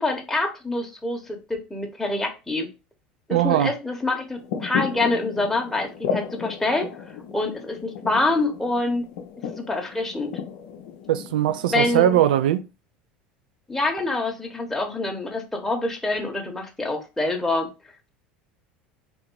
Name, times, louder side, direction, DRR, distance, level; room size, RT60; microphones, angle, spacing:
voice 1, 0.0-2.7 3.3-6.9 7.3-9.0 9.4-10.4 11.7-12.2 13.7-17.7, left 2 dB, 5° left, 0.9 m, -26 dB
voice 2, 3.3-3.7 11.1-12.6, right 12 dB, 80° right, 0.3 m, -20 dB
sound 1, 4.4-12.6, left 7 dB, 75° left, 0.5 m, -34 dB
3.4 x 2.6 x 3.1 m
hypercardioid pair, 80°, 5 cm